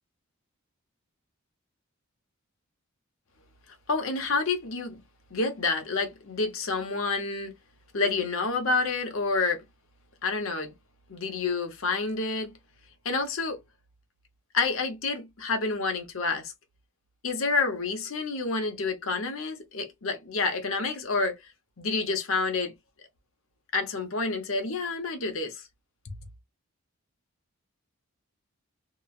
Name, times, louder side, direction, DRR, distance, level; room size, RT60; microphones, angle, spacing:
voice 1, 3.9-5.0 5.3-7.5 7.9-9.6 10.2-10.7 11.1-12.5 13.0-13.6 14.5-16.5 17.2-21.4 21.8-22.7 23.7-25.6 26.0-26.1, left 3 dB, 70° left, 0.8 m, -28 dB
2.9 x 2.3 x 2.3 m
head